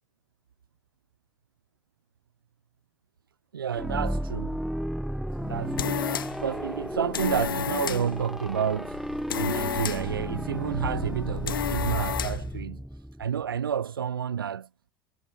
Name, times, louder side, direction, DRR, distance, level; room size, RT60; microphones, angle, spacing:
voice 1, 3.5-4.6 5.4-6.1 6.4-9.0 9.4-12.8 13.2-14.7, right 8 dB, 80° right, 0.7 m, -30 dB
sound 1, 3.7-13.4, equal, ahead, 0.6 m, -33 dB
sound 2, 5.4-12.6, left 10 dB, 75° left, 1.0 m, -33 dB
figure-of-eight pair, 70°, 12 cm